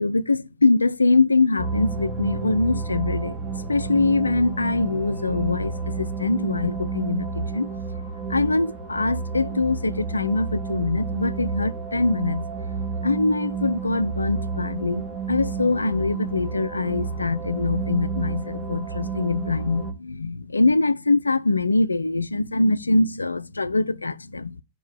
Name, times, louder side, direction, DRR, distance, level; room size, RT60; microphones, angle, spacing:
voice 1, 0.0-3.3 3.7-7.7 8.3-12.5 13.0-24.5, left 3 dB, 80° left, 0.3 m, -23 dB
sound 1, 1.6-19.9, right 5 dB, 30° right, 1.9 m, -30 dB
5.2 x 4.5 x 6.0 m
figure-of-eight pair, 90°, 0 cm